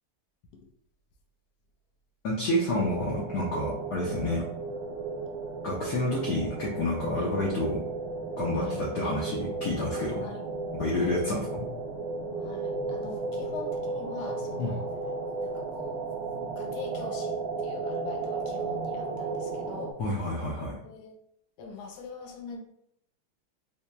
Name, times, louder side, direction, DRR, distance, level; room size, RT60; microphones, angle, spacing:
voice 1, 2.2-4.4 5.6-7.8 8.4-10.3 10.7-11.6 14.6-14.8 20.0-20.7, left 1 dB, 70° left, -4 dB, 1.0 m, -29 dB
sound 1, 2.8-19.9, right 3 dB, 75° right, 1.1 m, -34 dB
voice 2, 12.4-14.9 15.4-16.0 16.6-20.0 20.8-21.1 21.6-22.6, left 5 dB, 85° left, 1 dB, 0.9 m, -42 dB
4.3 x 2.8 x 2.2 m, 0.75 s
omnidirectional pair, 2.4 m